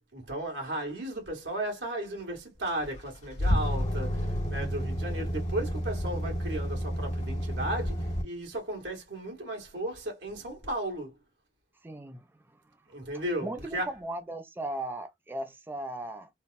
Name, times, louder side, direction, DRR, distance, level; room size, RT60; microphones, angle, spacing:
voice 1, 0.1-11.2 12.9-13.9, right 1 dB, 85° right, 1.9 m, -35 dB
sound 1, 2.7-8.2, equal, 40° left, 1.5 m, -30 dB
voice 2, 11.8-12.4 13.4-16.3, right 1 dB, 10° right, 0.4 m, -37 dB
3.9 x 2.1 x 2.5 m
head